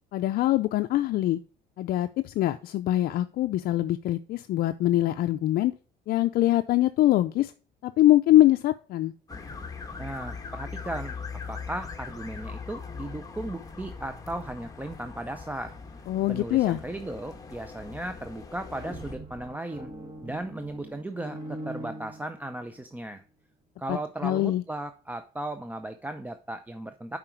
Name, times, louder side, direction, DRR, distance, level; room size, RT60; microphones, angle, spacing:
voice 1, 0.1-1.4 1.8-5.7 6.1-7.5 7.8-9.1 16.1-16.8 23.9-24.0 24.2-24.6, left 14 dB, 65° left, 9 dB, 0.4 m, -23 dB
sound 1, 9.3-19.2, left 5 dB, 20° left, 1.2 m, -41 dB
voice 2, 10.0-11.2 11.5-15.8 16.3-19.9 20.2-23.2 23.8-27.2, right 1 dB, 10° right, 8 dB, 0.5 m, -36 dB
sound 2, 18.6-22.8, right 1 dB, 25° right, 2.7 m, -42 dB
7.5 x 5.0 x 4.5 m, 0.39 s
cardioid pair, 110°, 17 cm